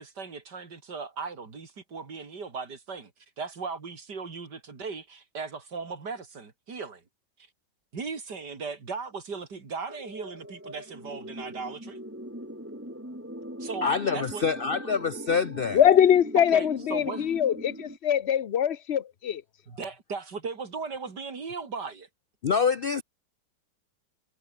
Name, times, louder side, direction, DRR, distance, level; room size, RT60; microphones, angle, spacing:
voice 1, 0.0-3.1 3.4-7.0 7.9-12.0 13.6-14.4 16.5-17.3 19.7-22.1, right 4 dB, 65° right, 3.6 m, -37 dB
sound 1, 9.9-18.0, equal, 5° right, 5.7 m, -41 dB
voice 2, 13.8-15.8 22.4-23.0, left 5 dB, 85° left, 0.4 m, -26 dB
voice 3, 15.7-19.4, left 9 dB, 50° left, 0.8 m, -22 dB
omnidirectional pair, 1.9 m